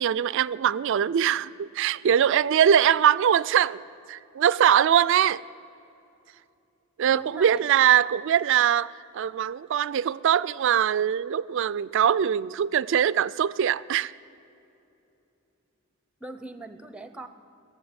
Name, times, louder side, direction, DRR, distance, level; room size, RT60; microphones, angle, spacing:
voice 1, 0.0-5.4 7.0-14.1, right 9 dB, 65° right, 0.3 m, -22 dB
voice 2, 7.1-7.6 16.2-17.3, right 2 dB, 5° right, 0.7 m, -40 dB
17.0 x 7.6 x 9.6 m
head